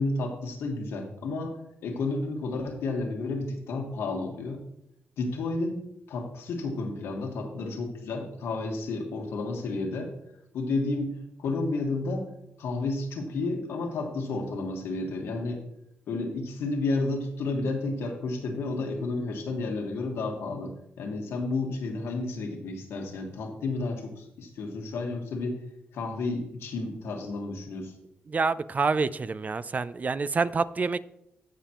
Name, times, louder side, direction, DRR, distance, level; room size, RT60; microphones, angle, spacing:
voice 1, 0.0-4.6 5.2-5.8 6.1-10.1 10.5-12.3 12.6-15.6 16.1-25.6 25.9-27.9, left 3 dB, 85° left, 1.5 m, -31 dB
voice 2, 28.3-31.0, right 4 dB, 40° right, 0.5 m, -27 dB
14.5 x 5.1 x 3.0 m
cardioid pair, 65°, 4 cm